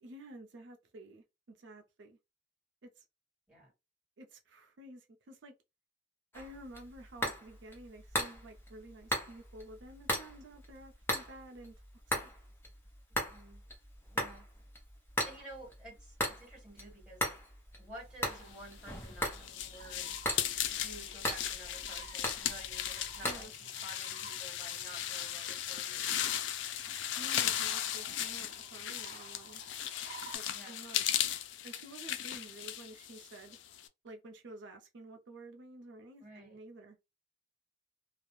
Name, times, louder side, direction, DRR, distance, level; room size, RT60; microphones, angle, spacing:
voice 1, 0.0-2.2 2.8-3.0 4.2-5.5 6.3-11.8 12.2-12.3 23.2-23.5 27.2-29.6 30.3-31.0 31.6-33.6 34.0-37.0, right 1 dB, 75° right, 0.5 m, -51 dB
sound 1, 6.3-23.4, left 1 dB, 15° left, 0.7 m, -39 dB
voice 2, 13.1-13.6 14.1-14.4 15.2-17.2 17.8-20.1 20.7-26.2 30.5-30.8 36.2-36.6, right 1 dB, 5° right, 1.5 m, -52 dB
sound 2, 17.9-30.4, right 4 dB, 40° right, 0.8 m, -55 dB
sound 3, 18.7-33.9, left 11 dB, 70° left, 0.3 m, -37 dB
2.3 x 2.0 x 3.0 m
head